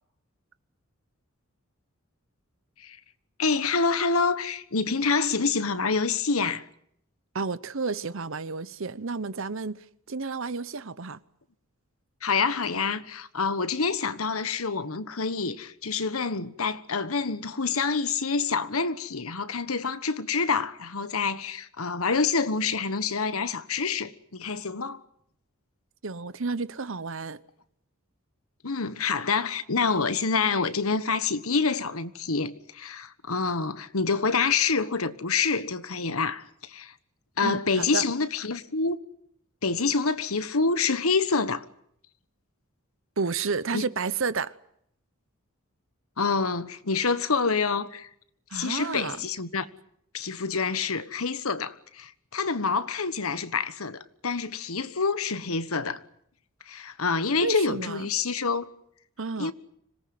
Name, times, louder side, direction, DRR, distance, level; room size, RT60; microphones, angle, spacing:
voice 1, 3.4-6.6 12.2-25.0 28.6-36.9 37.4-39.0 39.6-41.6 43.7-43.8 46.2-48.1 48.5-49.7 50.1-56.0 56.7-58.7 59.4-59.5, left 4 dB, 75° left, 1.3 m, -27 dB
voice 2, 7.3-11.2 26.0-27.4 37.4-38.0 43.2-44.5 48.5-49.2 57.4-58.0 59.2-59.5, right 4 dB, 60° right, 0.9 m, -31 dB
26.0 x 18.5 x 9.5 m
head